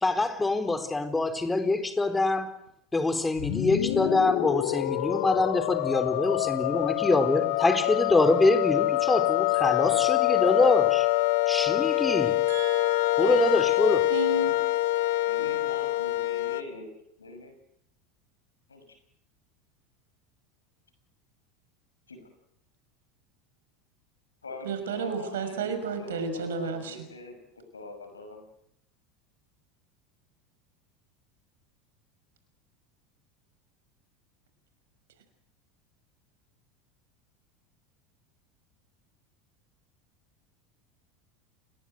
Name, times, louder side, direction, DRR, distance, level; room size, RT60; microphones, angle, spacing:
voice 1, 0.0-2.5 2.9-11.1 11.5-12.4 13.2-14.0, left 2 dB, 15° left, 8 dB, 4.2 m, -25 dB
sound 1, 3.4-16.6, left 17 dB, 60° left, 1.2 m, -25 dB
voice 2, 12.5-13.3 14.1-14.6 24.6-27.0, right 4 dB, 70° right, 9 dB, 6.0 m, -32 dB
voice 3, 15.3-16.9 17.2-17.5 18.7-18.8 22.1-22.3 24.4-28.4, left 2 dB, 85° left, 8 dB, 6.2 m, -43 dB
30.0 x 21.5 x 8.0 m, 0.76 s
figure-of-eight pair, 80°, 0 cm